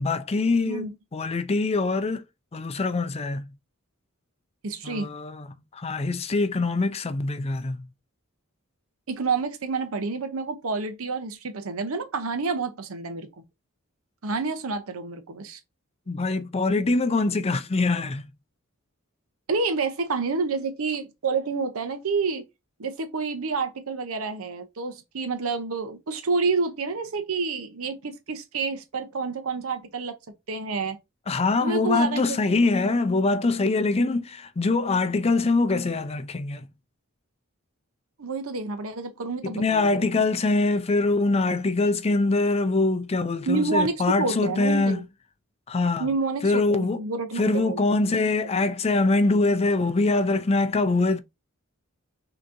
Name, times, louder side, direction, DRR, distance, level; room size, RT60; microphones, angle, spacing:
voice 1, 0.0-2.2 2.5-3.5 4.8-7.9 16.1-18.3 31.3-36.7 39.4-45.0 45.7-46.1 46.4-47.0 47.4-51.2, left 3 dB, 30° left, 0.5 m, -24 dB
voice 2, 4.6-5.1 9.1-13.3 14.2-15.6 19.5-22.4 22.8-30.2 30.5-31.0 31.6-32.6 38.2-40.2 43.5-45.0 46.0-48.0, right 4 dB, 80° right, 0.7 m, -29 dB
6.1 x 2.9 x 2.6 m
head